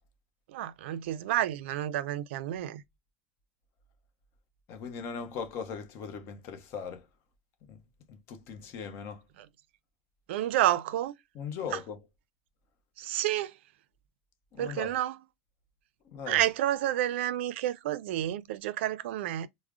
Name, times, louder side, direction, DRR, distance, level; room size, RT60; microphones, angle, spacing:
voice 1, 0.5-2.8 10.3-11.2 11.7-11.8 13.0-13.5 14.6-15.2 16.3-19.5, right 13 dB, 80° right, 0.4 m, -30 dB
voice 2, 4.7-7.1 7.7-7.8 8.1-9.2 11.3-12.0 14.5-14.9 16.0-16.4, left 6 dB, 45° left, 0.8 m, -39 dB
4.8 x 2.0 x 2.3 m
supercardioid pair, 150°, 6 cm